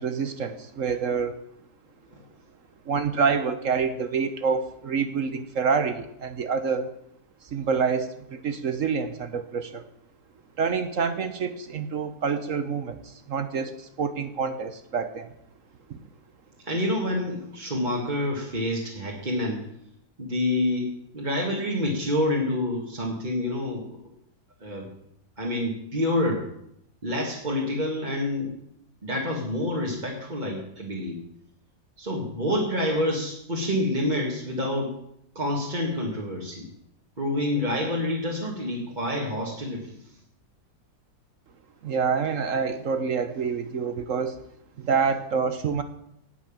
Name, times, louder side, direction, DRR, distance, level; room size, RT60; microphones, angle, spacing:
voice 1, 0.0-1.4 2.9-6.9 7.5-9.9 10.6-15.3 15.9-16.0 41.8-44.4 44.8-45.8, right 5 dB, 55° right, 10 dB, 1.0 m, -27 dB
voice 2, 16.7-19.6 20.2-20.9 21.1-24.0 24.6-24.9 25.4-26.4 27.0-28.5 29.0-31.2 32.0-34.9 35.4-36.6 37.2-39.9, left 1 dB, 25° right, -3 dB, 1.9 m, -27 dB
17.5 x 6.2 x 7.3 m, 0.76 s
omnidirectional pair, 2.0 m